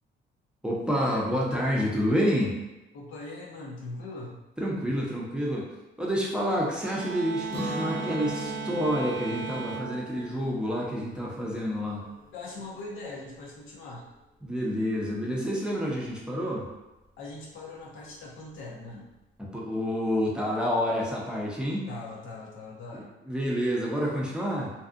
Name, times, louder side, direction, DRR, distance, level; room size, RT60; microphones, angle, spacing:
voice 1, 0.6-2.6 4.6-5.7 6.0-12.0 14.4-16.7 19.5-21.9 22.9-24.7, equal, 5° right, -4 dB, 0.6 m, -28 dB
voice 2, 2.9-4.5 12.3-14.1 17.2-19.1 21.9-23.1, left 2 dB, 75° left, -3 dB, 0.7 m, -41 dB
sound 1, 6.8-11.3, right 6 dB, 80° right, 0.4 m, -37 dB
Guitar, 7.5-13.3, left 1 dB, 30° left, 0.9 m, -40 dB
2.6 x 2.4 x 2.4 m, 1.0 s
cardioid pair, 90°, 20 cm